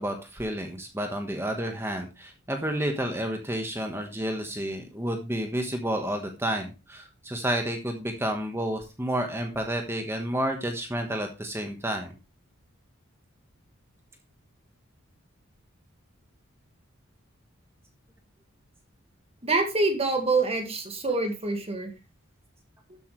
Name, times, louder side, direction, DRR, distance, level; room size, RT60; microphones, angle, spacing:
voice 1, 0.0-12.1, right 1 dB, 10° right, 4 dB, 1.3 m, -30 dB
voice 2, 19.4-21.9, right 3 dB, 30° right, 4 dB, 1.9 m, -26 dB
12.5 x 8.1 x 3.2 m, 0.29 s
head